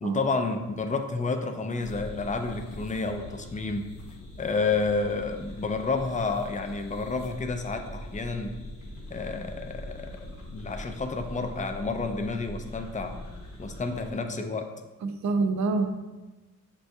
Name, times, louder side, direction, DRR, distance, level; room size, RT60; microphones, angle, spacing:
voice 1, 0.0-3.9 4.4-8.6 9.1-13.2 13.6-14.7, left 3 dB, 25° left, 5 dB, 0.4 m, -30 dB
sound 1, 1.8-14.1, left 1 dB, 90° left, 0.9 m, -42 dB
voice 2, 15.0-16.0, right 3 dB, 65° right, 6 dB, 0.4 m, -26 dB
6.2 x 2.3 x 2.7 m, 1.1 s
wide cardioid pair, 90°, 31 cm